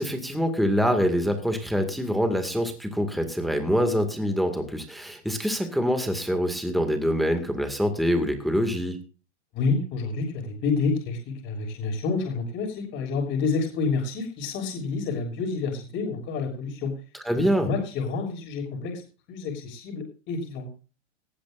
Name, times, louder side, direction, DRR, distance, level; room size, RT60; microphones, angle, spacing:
voice 1, 0.0-9.0 17.2-17.7, equal, ahead, 6 dB, 2.1 m, -25 dB
voice 2, 9.5-16.9 17.3-19.0 19.3-20.7, left 4 dB, 30° left, 1 dB, 6.6 m, -29 dB
18.5 x 15.0 x 2.6 m, 0.34 s
supercardioid pair, 160°, 36 cm